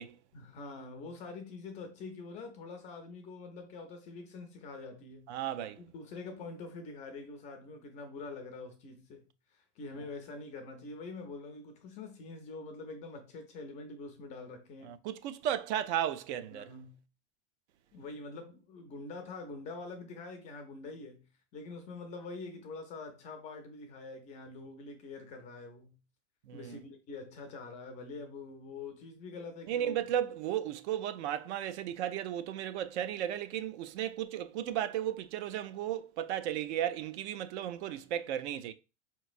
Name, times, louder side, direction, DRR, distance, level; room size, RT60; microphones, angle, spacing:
voice 1, 0.3-5.5 5.8-15.0 16.5-17.0 17.9-26.0 26.5-30.0, left 3 dB, 20° left, 0.3 m, -45 dB
voice 2, 5.3-5.8 14.8-16.7 26.5-26.8 29.7-38.7, right 10 dB, 70° right, 0.5 m, -34 dB
4.4 x 3.0 x 2.4 m
supercardioid pair, 150°, 36 cm